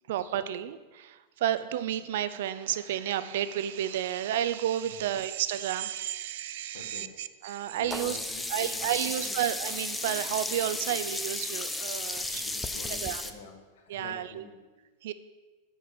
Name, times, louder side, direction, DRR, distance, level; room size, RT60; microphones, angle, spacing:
voice 1, 0.1-8.2 8.5-12.4 13.0-13.2 13.9-14.4 15.0-15.1, right 11 dB, 60° right, 13 dB, 0.5 m, -31 dB
voice 2, 6.7-7.1 7.8-9.4 12.3-14.5, left 4 dB, 75° left, 4 dB, 1.6 m, -47 dB
Sink (filling or washing), 7.9-13.3, left 2 dB, 5° left, 0.3 m, -34 dB
9.9 x 4.8 x 7.2 m, 1.2 s
supercardioid pair, 180°, 0 cm